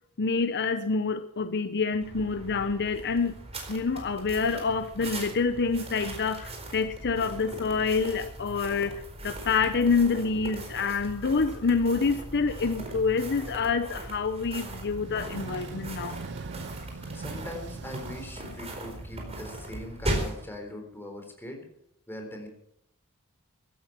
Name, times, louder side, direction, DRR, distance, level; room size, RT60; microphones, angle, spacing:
voice 1, 0.2-3.4 3.7-16.2, left 4 dB, 50° left, 11 dB, 0.7 m, -27 dB
sound 1, 2.0-20.4, right 1 dB, 30° right, 4.4 m, -39 dB
sound 2, 14.9-19.4, right 4 dB, 55° right, 0.5 m, -42 dB
voice 2, 16.9-21.6 22.1-22.5, left 1 dB, 10° left, 2 dB, 4.1 m, -41 dB
16.0 x 13.0 x 6.0 m, 0.73 s
head